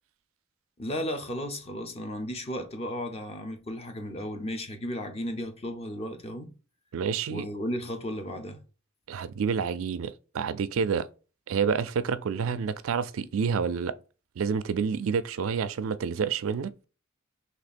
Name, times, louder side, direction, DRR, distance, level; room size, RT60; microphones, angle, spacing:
voice 1, 0.8-6.5 7.3-8.6, equal, 30° left, 0.7 m, -34 dB
voice 2, 6.9-7.5 9.1-11.1 11.5-13.9 14.4-16.7, right 6 dB, 75° right, 0.4 m, -28 dB
3.1 x 2.9 x 4.2 m
head